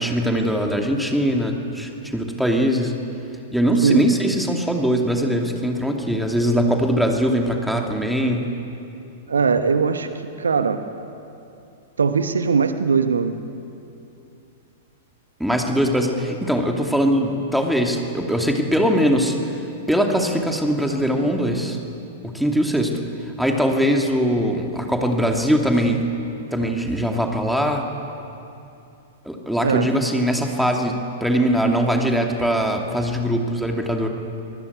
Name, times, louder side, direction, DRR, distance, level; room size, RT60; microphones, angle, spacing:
voice 1, 0.0-2.9 3.5-8.5 15.4-19.4 19.9-21.8 22.2-23.0 23.4-26.0 26.5-27.9 29.2-34.1, equal, ahead, 2 dB, 2.7 m, -21 dB
voice 2, 9.3-10.1 10.4-10.8 12.0-13.4 29.6-29.9, right 5 dB, 70° right, 9 dB, 1.2 m, -20 dB
24.0 x 20.0 x 8.3 m, 2.7 s
figure-of-eight pair, 100°, 0 cm